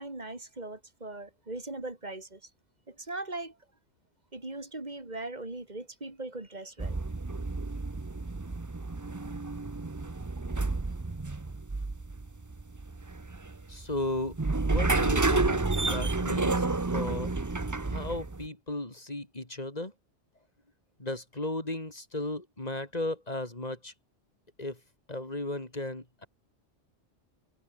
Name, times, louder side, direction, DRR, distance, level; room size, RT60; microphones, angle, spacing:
voice 1, 0.0-2.5 2.9-3.6 4.3-7.0, right 2 dB, 35° right, 4.0 m, -39 dB
sound 1, 6.8-18.5, right 3 dB, 20° right, 0.7 m, -30 dB
voice 2, 13.7-14.4 14.6-16.7 16.9-17.3 17.9-19.9 21.0-23.9 24.6-24.8 25.1-26.3, left 2 dB, 35° left, 4.2 m, -35 dB
omnidirectional pair, 1.2 m